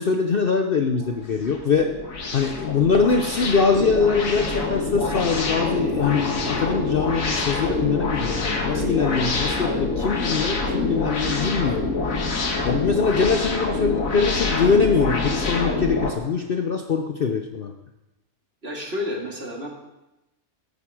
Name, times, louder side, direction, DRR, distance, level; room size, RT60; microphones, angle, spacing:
voice 1, 0.0-2.0 2.3-11.9 12.6-17.8, left 5 dB, 50° left, 5 dB, 0.8 m, -23 dB
sound 1, 1.0-16.1, left 3 dB, 65° left, 1.9 m, -26 dB
voice 2, 18.6-19.7, left 1 dB, 45° right, 0 dB, 2.4 m, -30 dB
13.0 x 9.8 x 4.8 m, 0.97 s
omnidirectional pair, 1.5 m